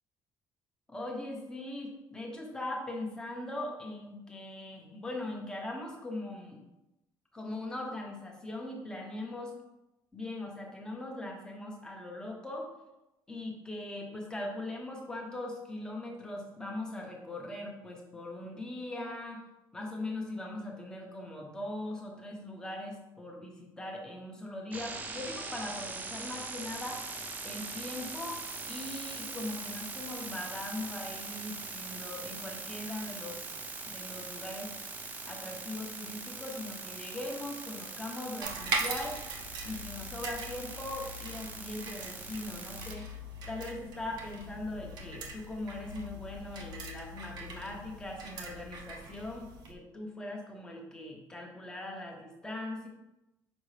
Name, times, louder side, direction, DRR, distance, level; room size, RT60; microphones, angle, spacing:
voice 1, 0.9-6.6 7.3-9.6 10.1-12.7 13.3-19.4 19.7-27.0 27.4-28.4 28.7-33.5 33.9-34.7 35.3-39.2 39.6-43.1 43.5-52.9, left 1 dB, 10° left, 0 dB, 1.0 m, -40 dB
sound 1, 24.7-42.9, right 3 dB, 20° right, 0.5 m, -42 dB
sound 2, 38.4-49.7, right 2 dB, 55° right, 0.8 m, -41 dB
6.2 x 5.1 x 3.3 m, 0.94 s
cardioid pair, 170°, 8 cm